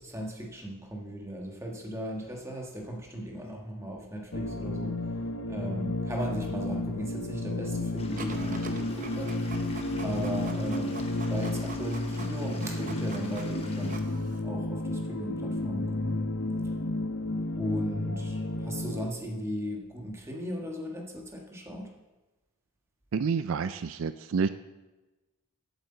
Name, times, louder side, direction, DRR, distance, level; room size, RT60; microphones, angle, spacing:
voice 1, 0.0-4.9 5.5-9.6 10.0-11.0 11.3-14.0 14.4-16.2 17.6-21.9, equal, 15° right, 0 dB, 1.6 m, -37 dB
sound 1, 4.3-19.1, left 2 dB, 60° left, 0.8 m, -32 dB
Stream / Liquid, 8.0-14.0, left 3 dB, 25° left, 1.1 m, -48 dB
Printer, 8.2-14.4, right 3 dB, 35° right, 0.9 m, -45 dB
voice 2, 23.1-24.5, right 5 dB, 70° right, 12 dB, 0.4 m, -28 dB
8.2 x 8.0 x 7.7 m, 1.1 s
head